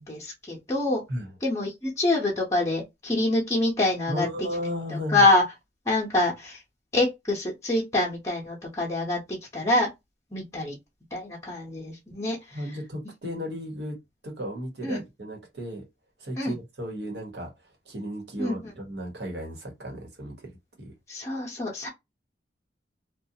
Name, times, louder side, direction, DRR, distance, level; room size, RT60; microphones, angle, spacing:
voice 1, 0.0-1.0 1.4-4.3 4.9-5.4 5.9-6.6 6.9-9.2 9.5-9.9 10.3-10.8 11.1-12.6 14.8-15.0 16.4-16.5 18.4-18.6 21.1-21.9, left 2 dB, 15° left, 0.8 m, -25 dB
voice 2, 4.1-5.2 12.5-14.0 14.2-15.8 16.2-17.5 17.9-20.5 20.8-20.9, equal, 65° right, 1.2 m, -34 dB
2.5 x 2.3 x 2.7 m
head